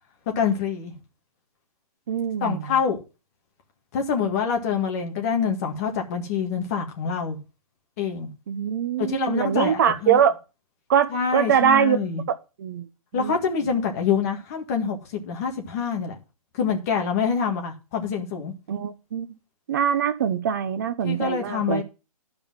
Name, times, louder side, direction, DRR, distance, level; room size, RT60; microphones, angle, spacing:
voice 1, 0.4-0.9 2.4-3.0 3.9-7.4 8.0-8.3 9.0-10.2 11.1-12.2 13.1-16.2 16.6-18.5 21.0-21.8, left 6 dB, 25° left, 1.8 m, -26 dB
voice 2, 2.1-2.7 8.5-10.4 10.9-12.0 12.6-12.9 13.1-13.4 18.7-19.3 19.7-21.8, right 8 dB, 30° right, 0.8 m, -23 dB
11.5 x 5.3 x 7.3 m
hypercardioid pair, 165°, 19 cm